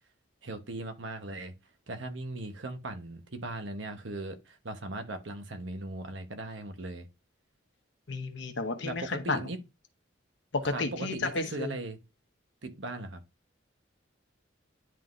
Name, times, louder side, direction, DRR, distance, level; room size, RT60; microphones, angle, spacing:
voice 1, 0.4-1.5 1.9-7.1 8.8-9.6 10.6-12.0 12.6-13.2, right 2 dB, 70° right, 1.1 m, -38 dB
voice 2, 8.1-9.4 10.5-11.7, left 3 dB, 65° left, 1.0 m, -32 dB
10.5 x 3.7 x 2.6 m
head